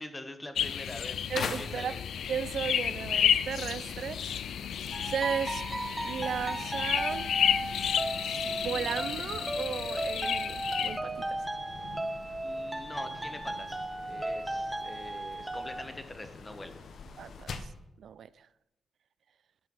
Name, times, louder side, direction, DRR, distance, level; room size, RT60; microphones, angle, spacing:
voice 1, 0.0-1.2 1.6-2.1 12.4-16.8, left 2 dB, 15° left, 0.9 m, -44 dB
sound 1, 0.6-11.0, left 9 dB, 80° left, 0.3 m, -31 dB
sound 2, 1.3-17.8, left 5 dB, 60° left, 0.9 m, -45 dB
voice 2, 1.3-1.9 2.3-4.4 5.0-5.6 6.0-7.3 8.5-11.1 17.2-17.5 18.0-18.3, right 7 dB, 65° right, 0.3 m, -35 dB
sound 3, 4.9-15.8, right 1 dB, 10° right, 0.9 m, -36 dB
11.5 x 5.7 x 6.0 m
wide cardioid pair, 150°, 0 cm